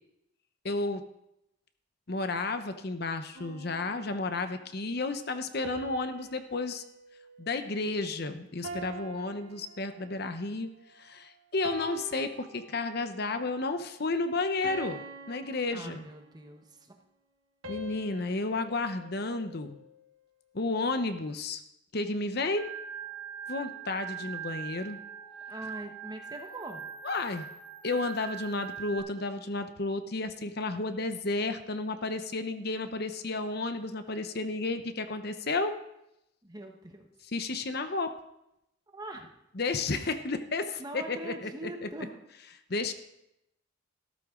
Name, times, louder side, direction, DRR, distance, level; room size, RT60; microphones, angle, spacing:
voice 1, 0.6-1.0 2.1-6.8 7.4-10.7 11.0-16.1 17.7-19.8 20.5-21.6 21.9-22.7 23.5-25.0 27.0-27.5 27.8-35.7 37.3-38.1 39.6-41.5 42.7-42.9, left 3 dB, 50° left, 9 dB, 0.8 m, -32 dB
sound 1, 3.3-4.7 5.6-8.1 8.6-10.4 10.9-11.2 11.6-13.2 13.7-13.9 14.6-16.5 17.6-20.0, right 2 dB, 80° right, 1.6 m, -46 dB
voice 2, 15.7-16.9 18.1-18.5 24.2-24.3 25.5-26.9 36.4-37.1 38.9-39.3 40.8-42.2, right 1 dB, 20° right, 4 dB, 1.1 m, -43 dB
Organ, 22.6-29.0, right 8 dB, 70° left, 4.5 m, -42 dB
14.0 x 13.0 x 3.8 m, 0.84 s
head